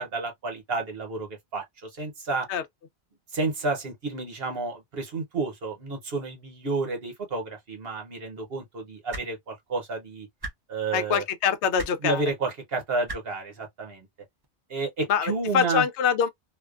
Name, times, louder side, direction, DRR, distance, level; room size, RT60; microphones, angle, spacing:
voice 1, 0.0-2.5 3.3-10.3 10.7-11.2 12.0-14.1 14.7-15.8, right 3 dB, 65° right, 1.0 m, -31 dB
sound 1, 9.1-9.3 10.4-10.5 11.8-11.9 13.1-13.2 14.4-14.5, right 1 dB, 30° right, 0.5 m, -35 dB
voice 2, 10.9-12.2 15.1-16.3, left 7 dB, 90° left, 0.9 m, -24 dB
2.4 x 2.2 x 2.3 m
omnidirectional pair, 1.1 m